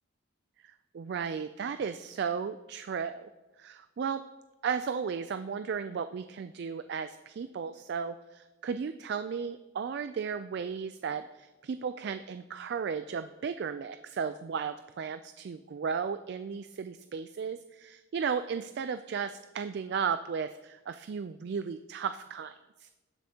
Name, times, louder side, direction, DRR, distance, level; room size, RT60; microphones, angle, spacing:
voice 1, 0.6-3.3 3.6-4.2 4.6-22.9, right 6 dB, 55° right, 11 dB, 0.3 m, -35 dB
18.0 x 7.8 x 2.8 m, 1.1 s
head